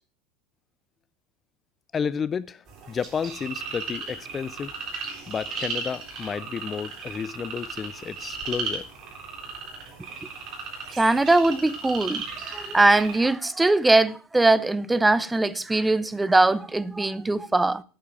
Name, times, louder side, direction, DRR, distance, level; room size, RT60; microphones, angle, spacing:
voice 1, 1.9-4.7 5.3-8.9, left 6 dB, 30° left, 0.4 m, -31 dB
sound 1, 2.7-13.2, right 4 dB, 45° right, 3.9 m, -36 dB
voice 2, 11.0-17.8, right 2 dB, 10° right, 0.6 m, -21 dB
8.7 x 7.3 x 7.0 m
hypercardioid pair, 95°, 0 cm